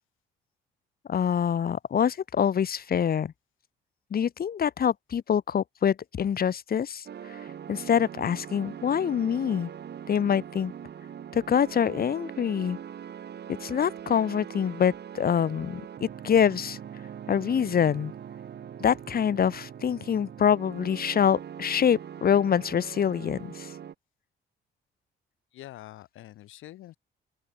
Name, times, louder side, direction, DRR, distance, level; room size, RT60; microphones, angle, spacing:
voice 1, 1.1-3.3 4.1-7.3 7.7-9.7 10.1-10.7 11.3-12.8 13.5-16.8 17.3-18.1 18.8-23.7, left 8 dB, 50° left, 1.5 m, -25 dB
sound 1, 7.1-23.9, right 9 dB, 55° right, 3.1 m, -42 dB
voice 2, 25.5-27.0, left 14 dB, 85° left, 4.3 m, -45 dB
open air
cardioid pair, 90°, 20 cm